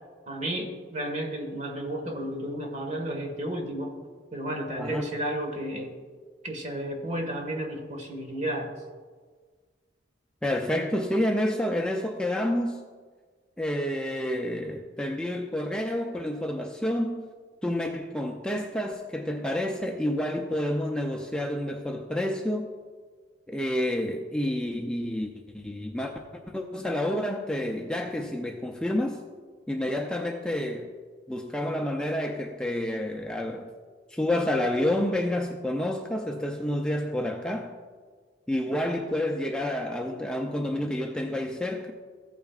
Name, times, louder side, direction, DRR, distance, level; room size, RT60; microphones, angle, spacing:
voice 1, 0.3-3.9 4.3-5.9 6.4-8.7, right 1 dB, 40° right, 3 dB, 1.4 m, -32 dB
voice 2, 10.4-12.8 13.6-17.2 17.6-22.7 23.5-26.1 26.5-29.2 29.7-30.9 31.3-33.7 34.1-37.7 38.5-41.9, left 1 dB, 5° left, 2 dB, 0.4 m, -29 dB
14.5 x 9.0 x 2.4 m, 1.5 s
head